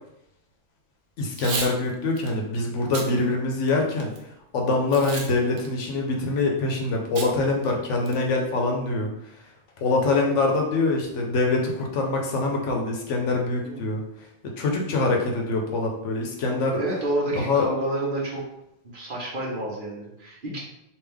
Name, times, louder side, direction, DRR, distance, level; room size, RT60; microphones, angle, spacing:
voice 1, 1.2-4.1 4.5-9.1 9.8-14.0 14.6-16.8 17.5-17.7, left 3 dB, 75° left, 0 dB, 1.0 m, -24 dB
Packing tape duct tape / Tearing, 1.3-1.7 2.2-2.3 2.8-3.1 3.6-4.2 4.9-5.3 5.6-5.7 7.2-7.3 7.7-7.8 8.1-8.4, right 4 dB, 75° right, 1.0 m, -32 dB
voice 2, 16.8-18.4 18.9-20.6, right 1 dB, 45° right, -4 dB, 0.9 m, -29 dB
3.5 x 2.6 x 3.4 m, 0.84 s
omnidirectional pair, 1.3 m